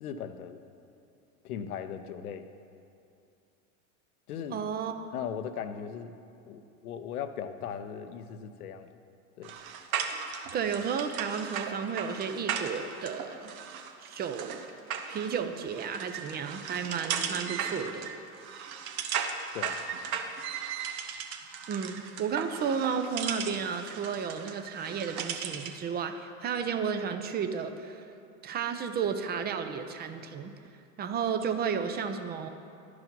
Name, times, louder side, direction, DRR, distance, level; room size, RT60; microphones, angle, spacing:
voice 1, 0.0-0.6 1.4-2.5 4.3-4.6 5.1-6.1 6.5-9.0 9.4-9.6 19.5-19.8, left 8 dB, 85° left, 10 dB, 0.7 m, -38 dB
voice 2, 4.5-5.0 10.5-13.5 14.0-14.6 15.1-18.1 21.7-28.0 28.4-30.5 31.0-32.5, right 6 dB, 25° right, 8 dB, 0.4 m, -32 dB
sound 1, 9.4-25.8, right 7 dB, 70° right, 0.8 m, -37 dB
11.0 x 4.9 x 5.3 m, 2.6 s
hypercardioid pair, 95°, 43 cm